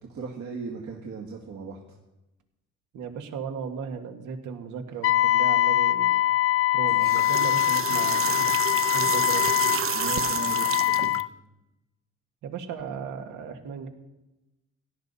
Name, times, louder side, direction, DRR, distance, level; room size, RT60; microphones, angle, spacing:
voice 1, 0.1-1.8 9.9-11.1, right 5 dB, 70° right, -1 dB, 2.1 m, -37 dB
voice 2, 2.9-6.1 6.7-8.5 8.9-9.5 12.4-13.9, right 6 dB, 85° right, 5 dB, 1.8 m, -36 dB
Wind instrument woodwind instrument, 5.0-11.3, left 14 dB, 50° left, 0.4 m, -23 dB
sound 1, 6.9-11.2, right 9 dB, 45° right, 0.7 m, -30 dB
16.5 x 11.5 x 4.2 m, 0.98 s
cardioid pair, 90°, 30 cm